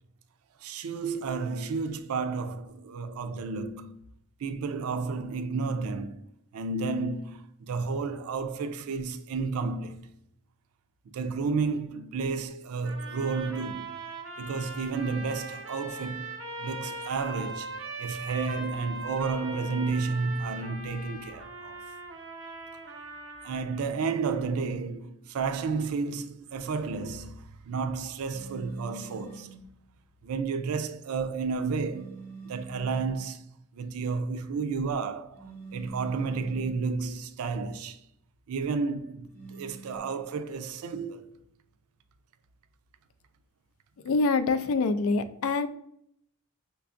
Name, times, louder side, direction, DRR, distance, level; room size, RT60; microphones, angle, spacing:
voice 1, 0.6-4.0 4.4-6.2 6.5-10.1 11.1-13.9 14.4-16.3 16.6-21.8 23.4-29.6 30.2-33.4 33.7-38.0 38.5-41.3, right 4 dB, 90° right, 0.4 m, -32 dB
sound 1, 12.8-23.8, right 3 dB, 65° right, 0.8 m, -40 dB
sound 2, 28.3-29.7 31.8-33.2 35.3-36.9 39.3-40.0, right 4 dB, 10° left, 1.3 m, -45 dB
voice 2, 44.0-45.7, left 3 dB, 70° left, 0.3 m, -25 dB
5.7 x 2.3 x 2.5 m
head